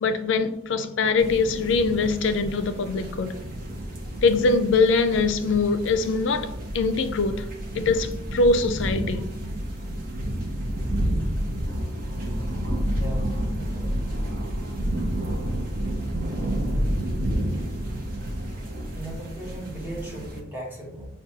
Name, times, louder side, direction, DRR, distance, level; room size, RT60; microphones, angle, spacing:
voice 1, 0.0-3.4 4.2-7.5 7.7-9.3, left 4 dB, 65° left, 0.4 m, -23 dB
sound 1, 1.2-20.4, equal, 45° right, 0.7 m, -30 dB
voice 2, 12.9-14.2 18.9-21.1, right 1 dB, 10° right, 0.9 m, -38 dB
5.9 x 2.2 x 2.7 m
head